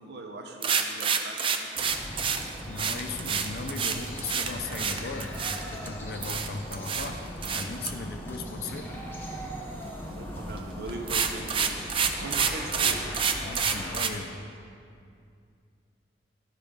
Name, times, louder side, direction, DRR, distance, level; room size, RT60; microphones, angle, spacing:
voice 1, 0.0-1.7 10.1-11.9 12.2-13.1, right 2 dB, 55° right, 2 dB, 0.7 m, -40 dB
sound 1, 0.6-5.9 6.2-7.1 7.4-7.9 10.4-10.6 10.9-14.1, right 6 dB, 25° right, 0.4 m, -28 dB
sound 2, 1.8-14.0, equal, 10° left, 0.8 m, -39 dB
voice 2, 2.7-7.2 7.5-8.9 13.4-14.4, left 3 dB, 55° left, 5 dB, 0.5 m, -37 dB
11.5 x 4.9 x 5.2 m, 2.3 s
head